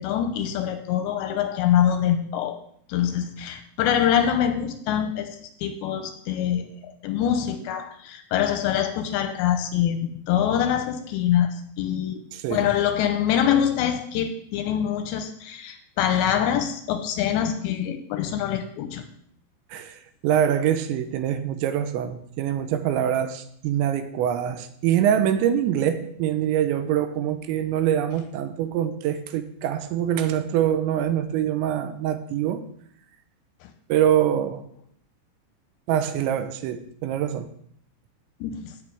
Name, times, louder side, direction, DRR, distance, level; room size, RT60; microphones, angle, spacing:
voice 1, 0.0-2.6 2.9-6.7 7.0-12.2 12.5-19.1 33.6-33.7 38.4-38.7, left 9 dB, 85° left, 2.8 m, -24 dB
voice 2, 12.3-12.7 19.7-32.7 33.9-34.6 35.9-37.5, right 10 dB, 85° right, 3.0 m, -24 dB
17.0 x 6.9 x 3.4 m
omnidirectional pair, 5.4 m